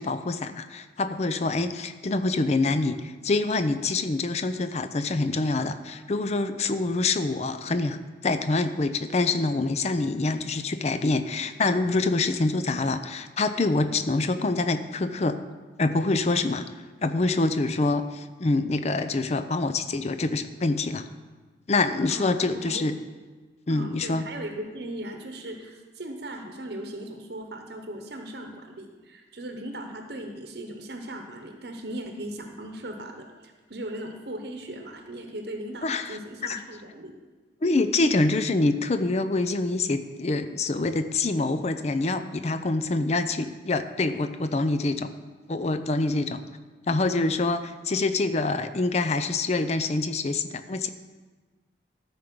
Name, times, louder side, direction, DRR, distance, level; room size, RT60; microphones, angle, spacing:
voice 1, 0.0-15.4 15.8-16.6 17.0-21.1 21.7-23.0 23.7-24.3 35.8-36.6 37.6-45.1 45.5-46.4 46.9-50.9, left 3 dB, 35° left, 10 dB, 0.5 m, -26 dB
voice 2, 22.1-22.8 23.7-37.1, right 1 dB, 60° right, 4 dB, 1.0 m, -38 dB
13.0 x 5.2 x 6.1 m, 1.3 s
head